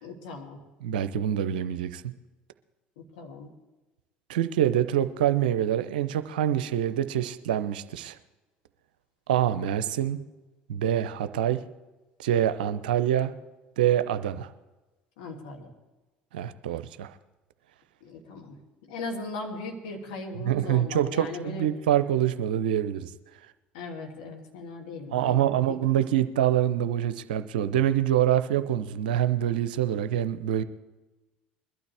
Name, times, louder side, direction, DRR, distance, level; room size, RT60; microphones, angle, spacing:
voice 1, 0.0-0.6 3.0-3.5 15.2-15.7 18.0-21.7 23.7-25.6, left 3 dB, 70° left, 0 dB, 2.5 m, -38 dB
voice 2, 0.8-2.1 4.3-8.2 9.3-10.2 10.7-11.6 12.2-13.3 13.8-14.5 16.3-17.1 20.4-23.1 25.1-30.6, right 11 dB, 75° right, 12 dB, 0.6 m, -25 dB
21.5 x 12.0 x 3.4 m, 1.1 s
hypercardioid pair, 65°, 5 cm